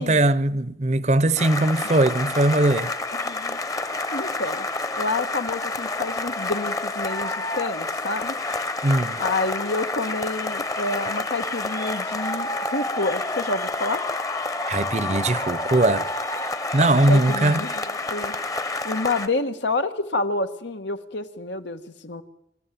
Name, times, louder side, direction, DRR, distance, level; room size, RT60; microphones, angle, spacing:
voice 1, 0.0-2.9 8.8-9.2 14.7-16.1 16.7-17.7, right 2 dB, 40° right, 0.7 m, -20 dB
sound 1, 1.4-19.3, left 2 dB, 20° left, 0.9 m, -29 dB
voice 2, 2.8-3.6 4.1-4.7 5.0-8.4 9.2-14.0 17.1-18.3 18.8-22.2, left 2 dB, 85° left, 1.6 m, -28 dB
26.0 x 14.0 x 9.3 m
head